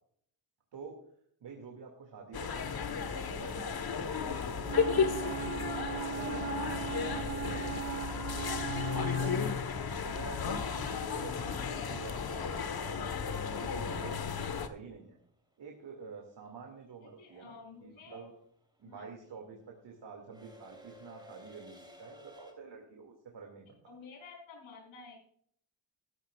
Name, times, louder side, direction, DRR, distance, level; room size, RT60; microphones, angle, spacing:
voice 1, 0.7-1.0 1.4-5.5 5.9-8.5 9.0-9.7 10.0-15.2 15.6-18.3 18.8-23.9, right 5 dB, 65° right, 1 dB, 2.4 m, -49 dB
sound 1, 2.3-14.7, left 6 dB, 50° left, 1.4 m, -34 dB
Wind instrument woodwind instrument, 4.7-9.5, right 10 dB, 35° right, 0.5 m, -39 dB
sound 2, 14.9-22.5, equal, 10° right, 3.5 m, -58 dB
voice 2, 17.0-18.3 18.8-19.3 23.8-25.2, left 4 dB, 85° left, -1 dB, 4.9 m, -51 dB
13.5 x 12.0 x 2.4 m, 0.64 s
cardioid pair, 75°, 47 cm